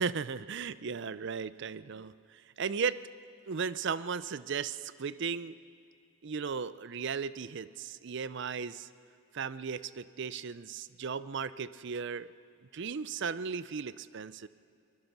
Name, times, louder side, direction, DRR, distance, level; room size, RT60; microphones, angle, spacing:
voice 1, 0.0-2.2 2.6-3.0 3.5-5.6 6.2-8.9 9.3-12.3 12.7-14.5, right 6 dB, 55° right, 16 dB, 0.5 m, -36 dB
23.5 x 21.5 x 6.0 m, 2.4 s
head